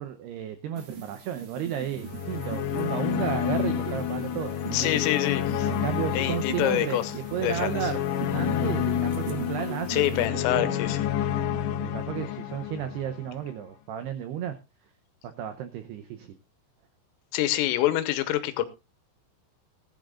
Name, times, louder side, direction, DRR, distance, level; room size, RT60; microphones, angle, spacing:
voice 1, 0.0-4.9 5.7-7.0 7.3-8.1 8.3-10.7 11.8-14.6 15.2-16.3, right 10 dB, 90° right, 9 dB, 2.3 m, -33 dB
sound 1, 0.8-10.3, right 7 dB, 60° right, 1.6 m, -41 dB
sound 2, 2.0-13.3, left 9 dB, 75° left, 2.7 m, -29 dB
voice 2, 4.7-5.7 6.1-7.1 7.4-7.8 9.9-11.0 17.3-18.7, left 14 dB, 90° left, 11 dB, 3.6 m, -26 dB
19.5 x 11.5 x 2.5 m, 0.25 s
omnidirectional pair, 5.9 m